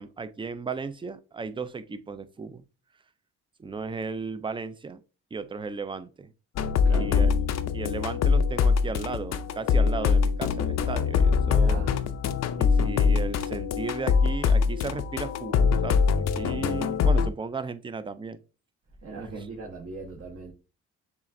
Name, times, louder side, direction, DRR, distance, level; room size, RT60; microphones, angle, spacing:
voice 1, 0.0-2.6 3.6-5.0 5.3-6.3 6.9-7.3 7.7-11.9 12.6-16.1 16.3-18.4 19.4-19.5, right 4 dB, 15° right, 0.4 m, -35 dB
sound 1, 6.5-17.3, left 5 dB, 60° left, 0.5 m, -23 dB
voice 2, 11.4-11.9 19.0-20.5, right 3 dB, 55° right, 1.2 m, -39 dB
7.2 x 2.5 x 2.6 m
cardioid pair, 90°, 30 cm